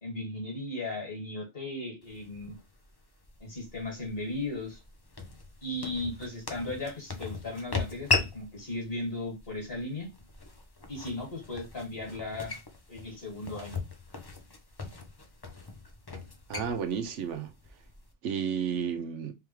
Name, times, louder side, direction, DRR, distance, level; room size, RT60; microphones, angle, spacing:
voice 1, 0.0-2.6 3.4-4.8 5.6-10.1 10.9-12.6 12.9-13.8, left 2 dB, 50° left, 2.2 m, -36 dB
sound 1, 2.0-18.1, left 4 dB, 25° left, 0.5 m, -38 dB
voice 2, 16.5-17.5 18.2-19.3, right 7 dB, 70° right, 1.0 m, -32 dB
3.8 x 3.4 x 3.1 m
omnidirectional pair, 1.3 m